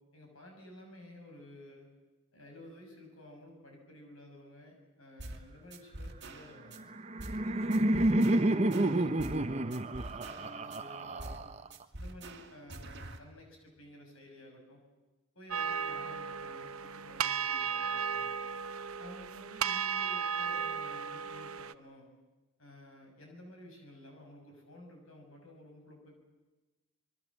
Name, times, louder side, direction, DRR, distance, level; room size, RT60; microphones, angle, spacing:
voice 1, 0.1-1.9 2.3-6.9 7.4-11.5 12.0-14.8 15.3-18.3 19.0-22.1 22.6-26.2, left 1 dB, 75° left, 2 dB, 6.5 m, -53 dB
sound 1, 5.2-5.4 5.7-6.8 7.2-7.4 7.7-9.4 9.7-10.8 11.2-11.5 11.7-13.2, right 1 dB, 50° right, 1.9 m, -45 dB
Laughter, 6.8-11.8, right 1 dB, 30° right, 0.8 m, -29 dB
sound 2, 15.5-21.7, right 7 dB, 85° right, 0.8 m, -35 dB
26.5 x 22.0 x 7.3 m, 1.2 s
head